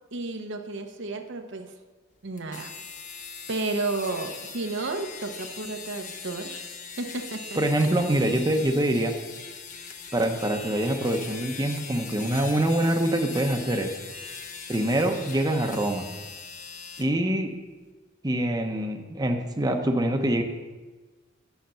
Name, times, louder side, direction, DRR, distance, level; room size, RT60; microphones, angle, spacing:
voice 1, 0.1-1.7 2.2-2.7 3.5-6.6 7.0-7.9, right 3 dB, 65° right, 5 dB, 0.9 m, -32 dB
sound 1, 2.4-17.1, left 5 dB, 40° left, 0.9 m, -40 dB
voice 2, 7.6-9.1 10.1-13.9 14.7-16.1 17.0-17.5 18.2-20.4, right 1 dB, 20° right, 3 dB, 0.8 m, -25 dB
10.5 x 6.7 x 6.9 m, 1.2 s
head